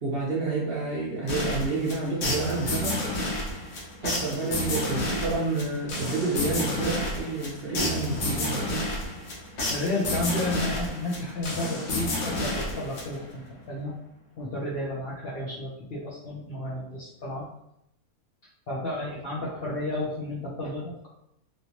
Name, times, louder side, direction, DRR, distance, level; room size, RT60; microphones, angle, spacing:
voice 1, 0.0-3.0 4.0-8.8, right 3 dB, 55° right, -5 dB, 0.7 m, -29 dB
sound 1, 1.3-13.4, left 1 dB, 85° left, 1.4 m, -30 dB
voice 2, 9.7-14.0 14.4-17.5 18.7-21.1, left 1 dB, 55° left, -5 dB, 0.7 m, -32 dB
3.1 x 2.8 x 2.8 m, 0.79 s
omnidirectional pair, 1.6 m